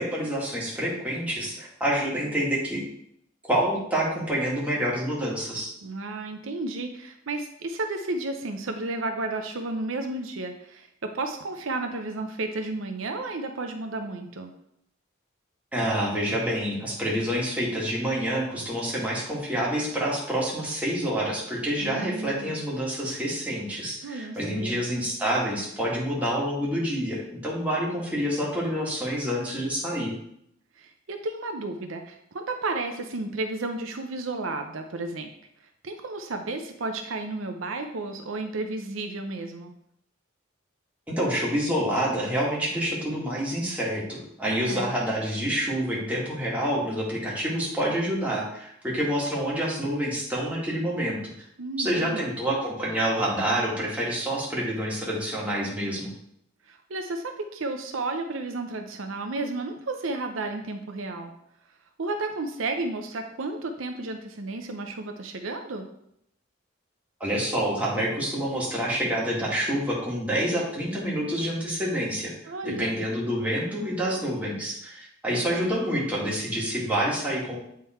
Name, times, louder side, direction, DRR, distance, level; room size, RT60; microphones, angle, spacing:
voice 1, 0.0-2.8 3.4-5.7 15.7-30.1 41.1-51.2 51.8-56.1 67.2-77.6, equal, 5° right, -6 dB, 1.9 m, -27 dB
voice 2, 5.8-14.5 21.8-22.7 24.0-24.8 30.8-35.3 35.8-39.7 44.4-44.9 51.6-52.4 56.7-61.3 62.0-65.9 72.5-73.0, right 2 dB, 75° right, 5 dB, 0.7 m, -32 dB
8.5 x 3.8 x 4.4 m, 0.74 s
head